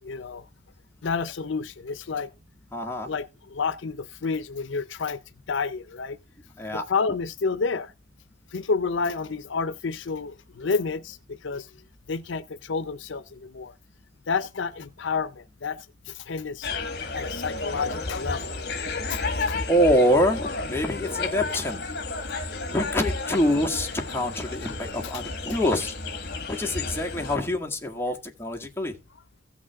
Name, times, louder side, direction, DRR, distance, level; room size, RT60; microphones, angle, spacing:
voice 1, 0.0-0.4 1.0-2.3 3.1-5.2 5.5-6.2 6.9-7.9 8.5-11.7 12.1-13.7 14.3-15.8 16.1-16.7 17.1-18.4 19.1-19.6, left 5 dB, 75° left, 0.6 m, -29 dB
voice 2, 2.7-3.1 6.6-6.8 19.7-21.8 22.7-25.9 26.5-28.9, equal, 10° left, 1.7 m, -25 dB
sound 1, 16.6-27.4, left 3 dB, 55° left, 1.6 m, -32 dB
16.0 x 6.1 x 3.5 m
head